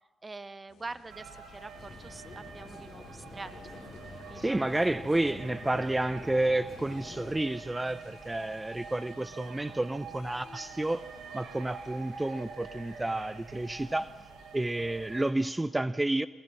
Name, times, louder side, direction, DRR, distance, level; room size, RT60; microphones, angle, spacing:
voice 1, 0.2-3.5 4.3-4.6 4.9-5.2, right 3 dB, 35° right, 1.1 m, -44 dB
sound 1, 0.7-14.2, left 4 dB, 75° left, 3.8 m, -57 dB
sound 2, 1.1-15.3, right 5 dB, 75° right, 3.8 m, -47 dB
sound 3, 1.8-7.4, left 3 dB, 50° left, 3.6 m, -48 dB
voice 2, 4.4-11.0 11.3-14.1 14.5-16.3, right 2 dB, 20° right, 0.6 m, -30 dB
23.0 x 20.0 x 7.7 m
hypercardioid pair, 45°, 0 cm